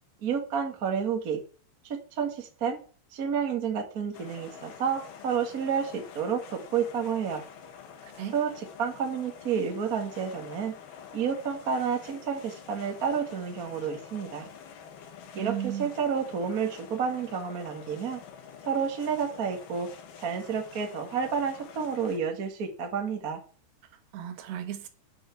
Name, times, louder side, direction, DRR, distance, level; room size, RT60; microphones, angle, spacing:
voice 1, 0.2-1.4 1.8-2.8 3.1-7.4 8.3-8.5 8.8-10.7 11.1-14.5 15.3-18.2 18.6-19.9 20.2-23.4, right 6 dB, 45° right, 1.1 m, -30 dB
sound 1, 4.1-22.2, left 7 dB, 70° left, 3.3 m, -47 dB
voice 2, 8.0-8.3 15.3-15.9 23.8-24.9, right 11 dB, 80° right, 3.3 m, -35 dB
8.5 x 7.8 x 7.1 m
omnidirectional pair, 4.8 m